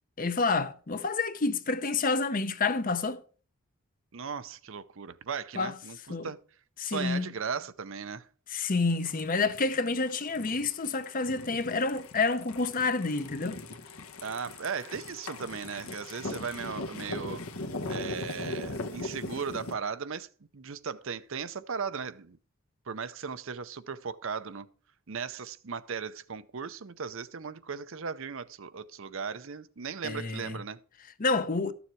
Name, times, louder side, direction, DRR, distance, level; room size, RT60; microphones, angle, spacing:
voice 1, 0.2-3.2 5.5-5.8 6.1-6.3 6.8-7.3 8.5-13.6 30.0-30.6 31.2-31.7, left 3 dB, 40° left, 0.7 m, -29 dB
voice 2, 4.1-6.0 6.2-6.4 6.8-8.3 14.2-17.4 17.9-20.3 20.5-22.4 22.9-24.7 25.1-30.8, right 6 dB, 60° right, 0.6 m, -37 dB
sound 1, 8.9-19.7, left 2 dB, 75° left, 1.2 m, -40 dB
13.0 x 7.1 x 4.5 m
head